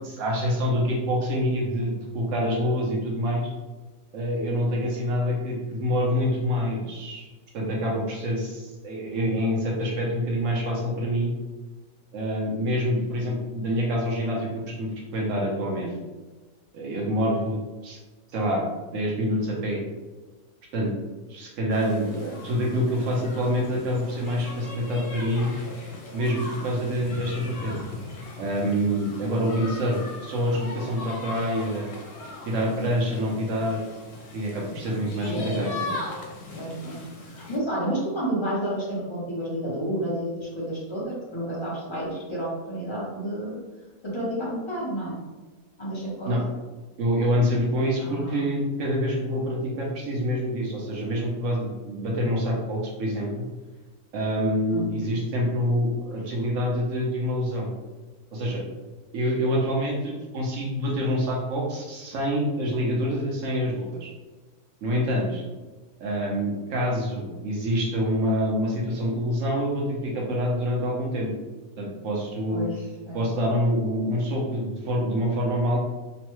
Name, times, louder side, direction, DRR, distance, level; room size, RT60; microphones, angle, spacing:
voice 1, 0.0-3.5 4.1-7.3 7.5-11.3 12.1-15.9 16.7-18.0 18.3-18.6 18.9-19.8 20.7-20.9 21.3-25.5 26.1-27.8 28.4-31.9 32.4-33.9 34.3-35.9 46.3-46.4 47.0-53.4 54.1-57.7 58.3-58.6 59.1-64.1 64.8-65.4 66.0-71.3 71.8-72.7 73.1-75.8, equal, 60° right, -2 dB, 1.0 m, -26 dB
sound 1, 21.7-37.6, left 2 dB, 75° left, 1.1 m, -39 dB
voice 2, 34.8-35.9 36.6-37.0 37.3-43.5 44.0-45.1 45.8-46.4 48.0-48.5 54.7-54.9 72.5-73.2, right 1 dB, 35° left, -7 dB, 0.5 m, -31 dB
3.1 x 2.1 x 3.0 m, 1.2 s
omnidirectional pair, 1.6 m